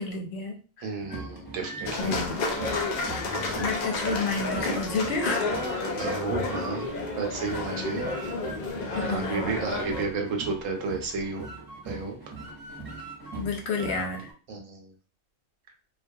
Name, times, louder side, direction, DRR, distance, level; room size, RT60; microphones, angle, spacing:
voice 1, 0.0-0.9 2.0-2.4 3.6-5.5 8.9-9.5 13.4-14.3, left 4 dB, 65° left, 2 dB, 0.7 m, -30 dB
voice 2, 0.8-2.2 6.0-6.9 7.2-8.1 9.1-11.5 11.9-12.2 14.5-14.9, right 4 dB, 90° right, 3 dB, 1.0 m, -32 dB
sound 1, 1.0-14.3, right 2 dB, 20° right, 0.6 m, -41 dB
sound 2, 1.8-10.0, left 3 dB, 85° left, 0.3 m, -31 dB
2.2 x 2.2 x 2.6 m, 0.38 s
omnidirectional pair, 1.3 m